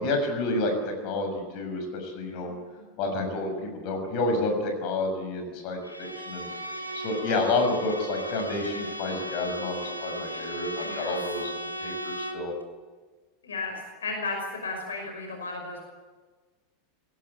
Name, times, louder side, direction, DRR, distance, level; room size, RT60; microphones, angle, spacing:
voice 1, 0.0-2.6 3.0-6.5 6.9-12.5, left 2 dB, 45° left, 4 dB, 6.5 m, -29 dB
Bowed string instrument, 5.8-12.5, equal, 90° left, 2.3 m, -36 dB
voice 2, 10.8-11.2 13.4-14.4 14.6-15.8, left 3 dB, 70° left, 3 dB, 5.6 m, -34 dB
23.5 x 18.5 x 9.9 m, 1.3 s
figure-of-eight pair, 85°, 0 cm